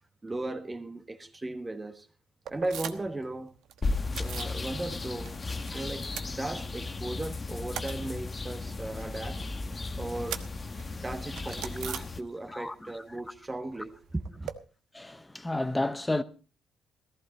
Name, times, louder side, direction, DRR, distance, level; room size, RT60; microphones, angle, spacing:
voice 1, 0.2-2.1 2.5-3.5 4.2-5.4 5.7-9.4 10.0-10.5 11.0-14.5, right 2 dB, 20° right, 1.6 m, -36 dB
sound 1, 2.4-3.2 3.5-4.6 4.9-5.7 6.0-7.0 7.3-12.7 12.9-14.5, right 9 dB, 75° right, 1.2 m, -42 dB
sound 2, 3.8-12.2, left 3 dB, 30° left, 1.2 m, -35 dB
voice 2, 12.5-12.9 14.9-16.2, left 2 dB, 10° left, 0.9 m, -32 dB
15.0 x 14.5 x 4.1 m
cardioid pair, 85°, 0 cm